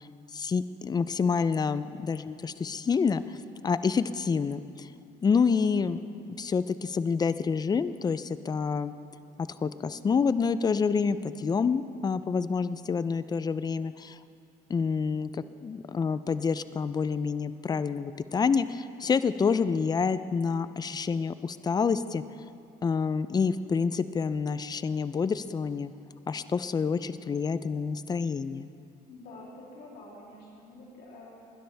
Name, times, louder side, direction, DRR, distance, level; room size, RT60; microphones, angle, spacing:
voice 1, 0.3-3.4 3.6-4.9 5.2-6.0 6.4-8.9 9.4-14.2 14.7-22.2 22.8-25.9 26.3-28.7, left 5 dB, 25° left, 14 dB, 0.4 m, -28 dB
voice 2, 5.2-5.6 29.1-31.3, left 2 dB, 75° left, -5 dB, 3.3 m, -48 dB
20.5 x 12.5 x 3.4 m, 2.5 s
cardioid pair, 110°, 17 cm